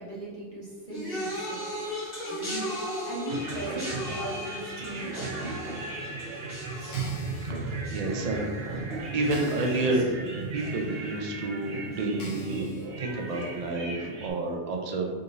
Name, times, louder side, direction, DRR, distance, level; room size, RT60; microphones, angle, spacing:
voice 1, 0.0-1.6 2.3-2.8 3.1-5.5 6.7-7.0 9.9-10.0, right 1 dB, 25° right, -7 dB, 1.3 m, -38 dB
sound 1, 0.9-10.3 10.6-11.1 11.9-12.0, equal, 20° left, 1.5 m, -38 dB
sound 2, 3.3-14.3, right 3 dB, 60° right, 0.8 m, -36 dB
sound 3, 6.8-7.5 8.2-8.3 8.7-8.8 9.3-10.0 10.4-10.5 11.3-11.4 12.2-12.9 13.4-13.5, left 3 dB, 70° left, 1.2 m, -46 dB
voice 2, 7.4-8.5 8.8-10.1 10.5-12.7 13.0-15.2, right 2 dB, 90° right, 1 dB, 0.3 m, -30 dB
5.0 x 3.0 x 2.5 m, 1.5 s
omnidirectional pair, 1.3 m